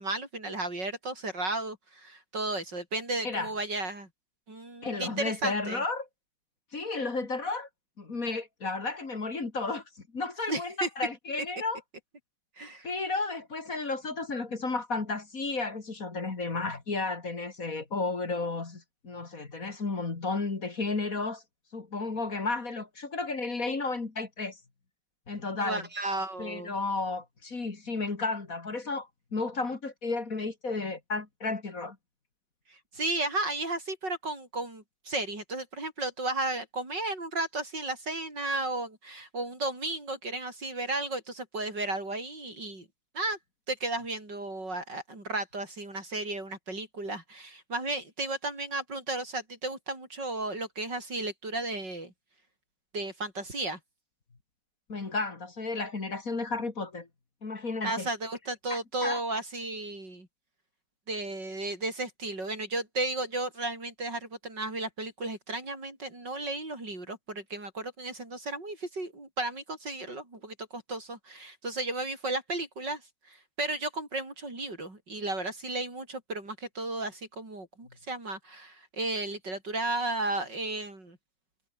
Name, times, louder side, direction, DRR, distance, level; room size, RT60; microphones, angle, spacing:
voice 1, 0.0-4.1 4.5-5.8 10.5-10.9 12.6-12.9 25.5-26.7 32.7-42.9 43.1-43.4 43.7-52.1 52.9-53.8 57.8-60.3 61.1-73.0 73.3-81.2, right 2 dB, 70° right, 7.9 m, -34 dB
voice 2, 4.8-6.1 6.7-7.7 8.0-9.8 10.1-11.8 12.8-21.4 21.7-24.6 25.3-25.9 26.4-32.0 54.9-57.1 57.4-58.1 58.7-59.2, left 3 dB, 45° left, 3.2 m, -33 dB
omnidirectional pair, 2.0 m